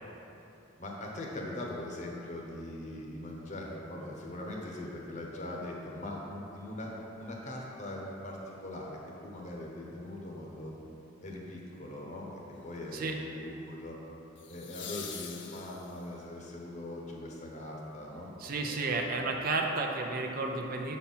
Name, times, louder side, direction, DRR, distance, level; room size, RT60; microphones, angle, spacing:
voice 1, 0.8-10.8 11.2-14.0 14.5-19.2, left 1 dB, 40° left, -2 dB, 1.0 m, -41 dB
sound 1, 11.3-11.7 14.4-16.2 19.1-19.2, left 7 dB, 60° left, 0.7 m, -44 dB
voice 2, 18.4-21.0, right 3 dB, 45° right, 2 dB, 0.6 m, -32 dB
6.9 x 4.3 x 5.6 m, 2.8 s
head